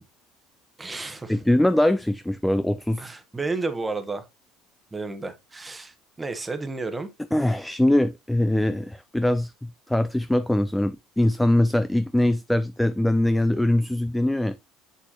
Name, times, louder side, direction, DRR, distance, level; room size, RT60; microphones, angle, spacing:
voice 1, 0.8-1.4 3.0-4.3 4.9-7.1, right 3 dB, 10° right, 1.1 m, -32 dB
voice 2, 1.3-3.1 7.3-9.5 9.9-14.6, left 1 dB, 5° left, 0.3 m, -22 dB
8.0 x 6.2 x 3.0 m
cardioid pair, 155°, 0 cm